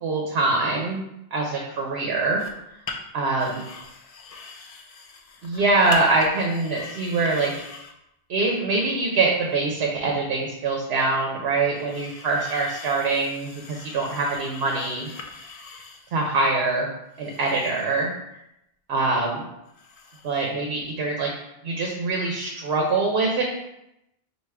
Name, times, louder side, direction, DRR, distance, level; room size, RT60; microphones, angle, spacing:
voice 1, 0.0-1.0 1.3-2.4 3.1-3.6 5.4-7.5 8.3-15.1 16.1-16.9 17.2-18.1 18.9-19.4 20.2-21.3 21.6-23.4, right 3 dB, 75° right, 0 dB, 0.9 m, -24 dB
sound 1, 2.4-2.6 2.9-3.0 3.4-7.9 9.5-9.6 11.7-16.3 17.1-18.1 19.7-20.5 20.8-20.9, left 4 dB, 55° left, 0.4 m, -40 dB
4.8 x 2.5 x 3.3 m, 0.84 s
omnidirectional pair, 1.1 m